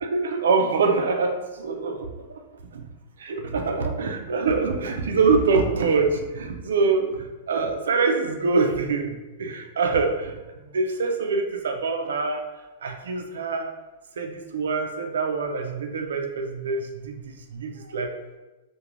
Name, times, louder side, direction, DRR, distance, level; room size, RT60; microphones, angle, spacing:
voice 1, 0.0-2.4 2.7-2.8 3.2-10.3 10.6-12.4 12.8-13.7 14.2-18.2, right 4 dB, 85° right, 4 dB, 0.4 m, -25 dB
2.4 x 2.2 x 2.9 m, 1.1 s
hypercardioid pair, 125°, 0 cm